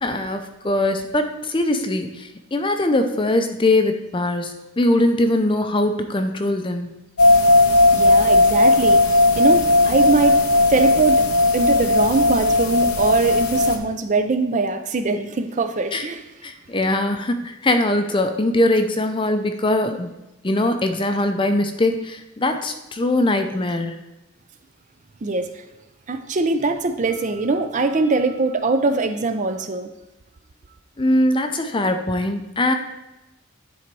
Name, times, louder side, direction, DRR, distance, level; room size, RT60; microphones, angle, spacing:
voice 1, 0.0-6.9 15.9-16.1 16.4-20.1 20.4-24.1 31.0-32.7, left 1 dB, 25° left, 7 dB, 0.5 m, -21 dB
sound 1, 7.2-13.8, left 2 dB, 85° left, 0.9 m, -16 dB
voice 2, 7.9-10.4 10.7-11.2 11.5-16.2 25.2-25.6 26.1-29.9, right 3 dB, 35° right, 8 dB, 0.4 m, -22 dB
10.5 x 4.0 x 4.6 m, 0.96 s
head